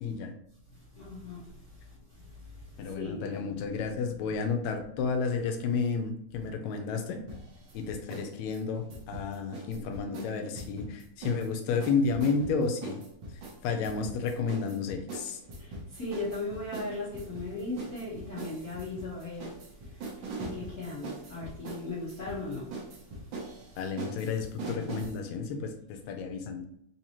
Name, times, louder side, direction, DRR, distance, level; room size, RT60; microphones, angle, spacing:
voice 1, 0.0-0.3 2.8-7.2 7.7-13.0 13.6-15.4 23.8-26.6, left 5 dB, 80° left, 5 dB, 1.8 m, -31 dB
voice 2, 0.9-1.5 2.1-3.6 4.2-4.4 15.6-19.5 19.8-22.7 24.6-25.0, left 2 dB, 60° left, -10 dB, 0.9 m, -38 dB
sound 1, 7.3-8.3 8.5-11.5 11.8-25.2, right 2 dB, 80° right, 1.0 m, -41 dB
4.6 x 2.8 x 2.9 m, 0.74 s
omnidirectional pair, 3.3 m